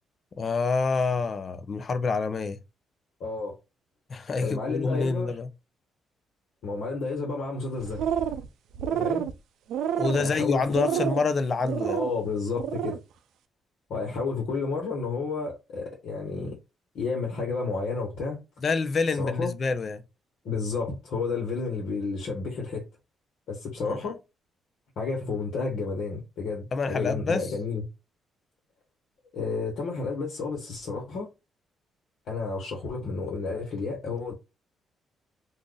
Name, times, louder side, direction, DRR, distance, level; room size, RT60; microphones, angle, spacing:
voice 1, 0.4-2.6 4.1-5.5 10.0-12.0 18.6-20.0 23.8-24.0 26.7-27.5, left 4 dB, 45° left, 0.5 m, -27 dB
voice 2, 3.2-3.6 4.4-5.3 6.6-8.0 8.9-9.3 10.1-11.0 11.8-13.0 13.9-16.6 16.9-18.4 19.2-19.5 20.4-22.8 23.5-24.2 25.0-27.8 29.3-31.3 32.3-34.3, left 4 dB, 75° left, 1.2 m, -31 dB
sound 1, 7.8-8.5 8.7-9.3 9.7-10.3 10.7-11.2 11.6-12.1 12.5-13.0, right 9 dB, 80° right, 0.3 m, -28 dB
2.5 x 2.4 x 3.8 m
cardioid pair, 90°, 0 cm